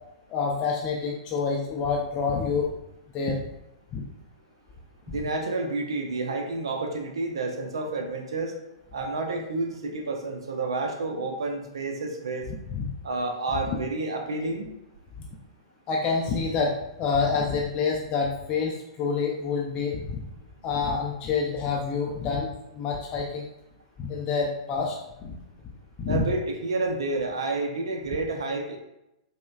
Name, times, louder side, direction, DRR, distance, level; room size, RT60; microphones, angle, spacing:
voice 1, 0.3-2.7 3.1-3.4 3.9-4.0 12.7-12.9 15.2-15.3 15.9-20.2 20.6-23.5 24.0-25.0 25.2-25.3 26.0-26.2, left 5 dB, 35° left, -1 dB, 0.4 m, -27 dB
voice 2, 5.1-8.5 8.9-12.5 13.0-14.7 26.1-28.8, right 2 dB, 65° right, 4 dB, 0.6 m, -30 dB
5.0 x 2.2 x 2.3 m, 0.88 s
figure-of-eight pair, 105°, 3 cm